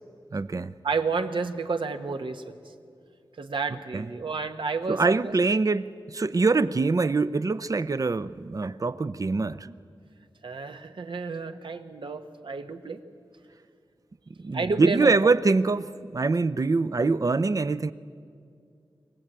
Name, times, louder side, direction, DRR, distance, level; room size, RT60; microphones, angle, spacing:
voice 1, 0.3-0.7 3.9-4.1 4.9-9.7 14.4-17.9, right 3 dB, 45° right, 0.6 m, -24 dB
voice 2, 0.8-2.6 3.4-5.6 10.4-13.0 14.5-15.3, right 4 dB, 75° right, 1.2 m, -31 dB
24.0 x 17.5 x 8.9 m
wide cardioid pair, 95°, 9 cm